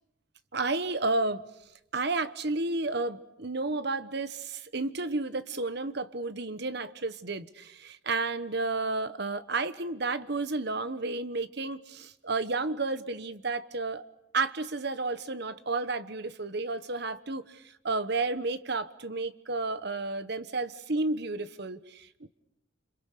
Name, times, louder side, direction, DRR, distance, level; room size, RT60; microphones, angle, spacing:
voice 1, 0.5-1.4 1.9-14.0 14.3-22.3, right 3 dB, 55° right, 12 dB, 1.2 m, -32 dB
28.5 x 26.5 x 6.7 m, 0.85 s
head